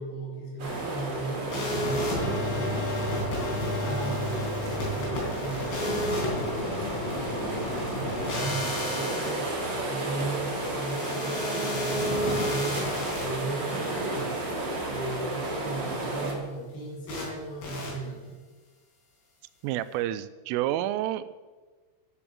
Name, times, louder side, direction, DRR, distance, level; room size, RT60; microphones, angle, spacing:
voice 1, 0.0-4.5 4.9-6.8 7.1-14.4 14.9-18.4, right 2 dB, 75° left, -5 dB, 6.7 m, -37 dB
sound 1, 0.6-16.3, right 2 dB, 55° right, 1.2 m, -33 dB
sound 2, 1.5-13.2 17.1-17.3 17.6-17.9, left 1 dB, 60° left, 5.7 m, -32 dB
voice 2, 19.6-21.4, right 13 dB, 90° right, 14 dB, 3.2 m, -29 dB
12.5 x 7.0 x 7.2 m, 1.3 s
omnidirectional pair, 5.7 m